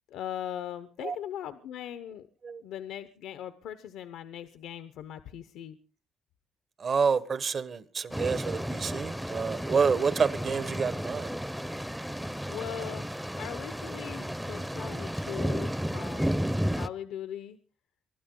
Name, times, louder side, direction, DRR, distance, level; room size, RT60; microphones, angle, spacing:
voice 1, 0.1-2.3 2.6-5.8 12.5-13.1 13.3-17.6, left 10 dB, 85° left, 0.9 m, -40 dB
voice 2, 6.8-11.3, right 5 dB, 50° right, 1.3 m, -28 dB
sound 1, 8.1-16.9, equal, 5° right, 0.7 m, -33 dB
24.5 x 12.5 x 3.8 m
cardioid pair, 90°, 0 cm